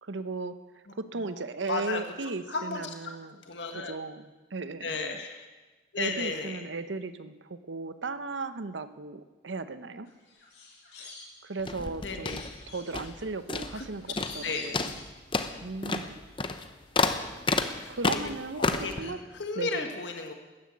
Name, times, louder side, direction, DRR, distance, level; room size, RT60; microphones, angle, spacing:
voice 1, 0.0-0.5 0.9-3.4 3.7-5.3 6.0-10.1 11.0-11.1 11.4-15.0 15.6-16.2 17.9-19.2 19.5-19.9, right 3 dB, 80° right, 12 dB, 0.8 m, -36 dB
voice 2, 1.7-2.0 2.5-2.9 3.5-3.9 4.8-5.4 5.9-6.6 12.0-12.3 13.7-13.8 14.4-14.8 17.8-18.2 18.6-20.3, left 4 dB, 75° left, 4 dB, 1.4 m, -34 dB
sound 1, 10.0-11.8 12.2-15.6 15.9-16.5 16.8-16.9, left 3 dB, 60° left, 3.6 m, -48 dB
sound 2, 11.6-13.2 13.5-13.9 14.2-14.4 14.7-19.0, left 3 dB, 25° left, 0.7 m, -30 dB
14.0 x 10.0 x 8.5 m, 1.2 s
head